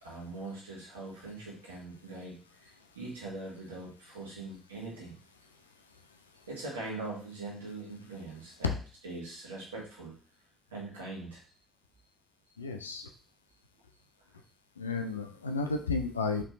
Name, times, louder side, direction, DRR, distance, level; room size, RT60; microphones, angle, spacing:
voice 1, 0.0-5.2 6.5-8.7 9.0-10.1 10.7-11.4, right 2 dB, 85° right, -4 dB, 1.6 m, -42 dB
voice 2, 12.6-13.1 14.8-16.4, left 3 dB, 90° left, 5 dB, 0.4 m, -32 dB
5.0 x 3.4 x 3.1 m, 0.41 s
figure-of-eight pair, 50°, 0 cm